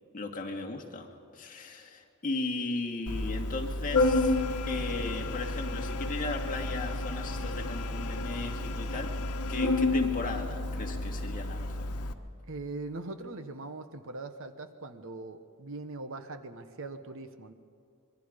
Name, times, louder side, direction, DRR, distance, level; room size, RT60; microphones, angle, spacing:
voice 1, 0.1-4.4 4.7-9.1 9.5-11.9, left 3 dB, 40° left, 2 dB, 2.0 m, -36 dB
Organ, 3.1-12.1, left 2 dB, 85° left, 1.2 m, -31 dB
voice 2, 12.4-17.5, right 2 dB, 65° right, 9 dB, 1.2 m, -41 dB
25.5 x 22.0 x 5.2 m, 2.3 s
head